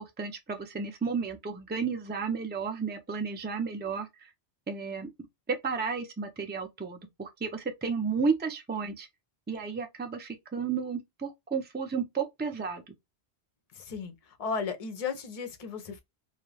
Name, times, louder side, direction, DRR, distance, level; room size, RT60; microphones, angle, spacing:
voice 1, 0.0-4.3 4.7-5.1 5.6-9.1 9.5-12.9, right 5 dB, 15° right, 0.4 m, -33 dB
voice 2, 13.7-16.0, left 5 dB, 45° left, 0.6 m, -35 dB
2.4 x 2.2 x 3.2 m
omnidirectional pair, 1.1 m